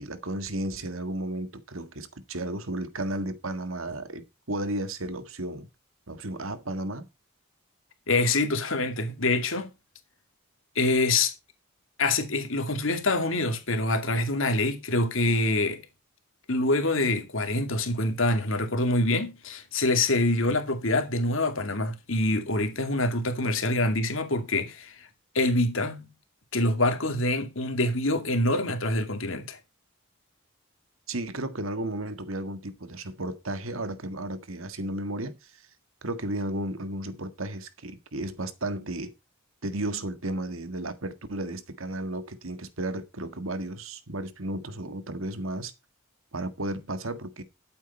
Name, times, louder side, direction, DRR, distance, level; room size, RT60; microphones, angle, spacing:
voice 1, 0.0-5.7 6.1-7.0 31.1-35.7 36.0-39.1 39.6-45.7 46.3-47.4, right 1 dB, 80° right, 1.7 m, -33 dB
voice 2, 8.1-9.7 10.8-11.3 12.0-15.8 16.5-25.1 25.3-26.1 26.5-29.6, left 2 dB, 75° left, 2.4 m, -25 dB
12.5 x 8.5 x 4.3 m
head